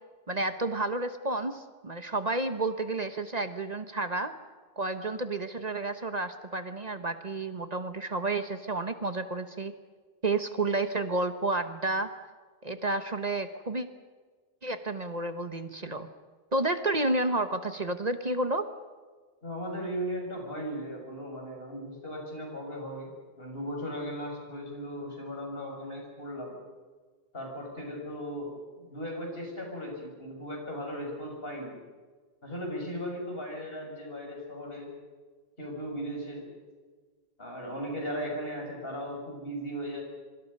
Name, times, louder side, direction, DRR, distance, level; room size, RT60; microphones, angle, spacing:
voice 1, 0.3-4.3 4.8-9.7 10.2-12.1 12.6-13.9 14.6-16.1 16.5-18.7, right 2 dB, 40° right, 9 dB, 1.3 m, -31 dB
voice 2, 19.4-26.6 27.3-31.8 32.4-34.9 35.6-36.5 37.4-40.0, equal, 65° left, 1 dB, 6.8 m, -37 dB
26.0 x 25.0 x 5.5 m, 1.5 s
omnidirectional pair, 1.0 m